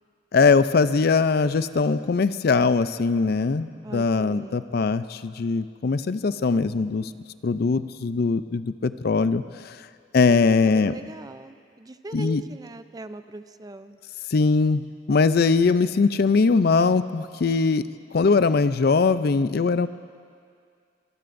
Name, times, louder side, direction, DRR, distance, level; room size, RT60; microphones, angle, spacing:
voice 1, 0.3-7.1 7.4-9.8 10.1-10.9 12.1-12.4 14.3-14.8 15.1-17.8 18.1-19.9, left 4 dB, 60° left, 13 dB, 0.5 m, -21 dB
voice 2, 3.8-4.7 10.3-14.0, right 2 dB, 20° right, 10 dB, 0.5 m, -40 dB
24.5 x 23.0 x 2.6 m, 2.2 s
head